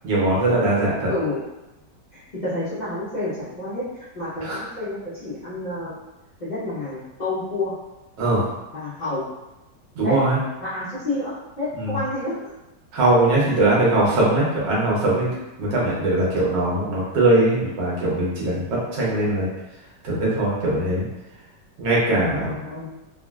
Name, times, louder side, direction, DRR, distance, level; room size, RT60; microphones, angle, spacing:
voice 1, 0.0-1.1 4.4-4.6 8.2-8.4 9.9-10.4 11.8-11.9 12.9-15.3 15.6-19.5 20.0-21.0 21.8-22.6, right 2 dB, 85° right, -6 dB, 1.6 m, -21 dB
voice 2, 1.1-1.4 2.1-3.8 4.1-6.0 6.4-7.8 8.7-9.3 10.0-10.2 10.6-12.5 22.3-23.0, left 1 dB, 60° left, -12 dB, 0.4 m, -29 dB
3.6 x 2.0 x 2.3 m, 0.98 s
omnidirectional pair, 1.9 m